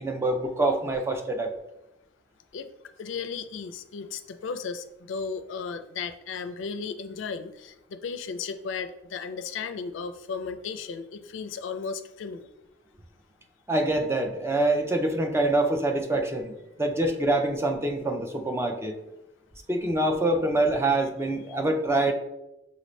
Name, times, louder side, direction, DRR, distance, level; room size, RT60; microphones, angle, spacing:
voice 1, 0.0-1.5 13.7-19.0 19.7-22.1, right 2 dB, 15° right, 4 dB, 0.4 m, -25 dB
voice 2, 3.0-7.7 8.0-12.5, left 5 dB, 75° left, 10 dB, 0.4 m, -35 dB
5.8 x 2.6 x 3.1 m, 0.92 s
head